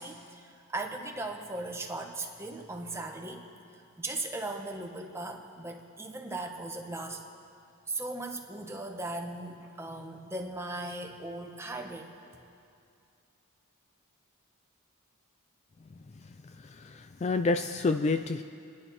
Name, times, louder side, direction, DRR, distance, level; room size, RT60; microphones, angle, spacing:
voice 1, 0.0-3.5 4.0-7.2 7.9-12.1, right 2 dB, 10° right, 2 dB, 1.2 m, -38 dB
voice 2, 16.4-18.4, left 3 dB, 30° left, 8 dB, 0.4 m, -29 dB
28.5 x 10.5 x 4.3 m, 2.5 s
head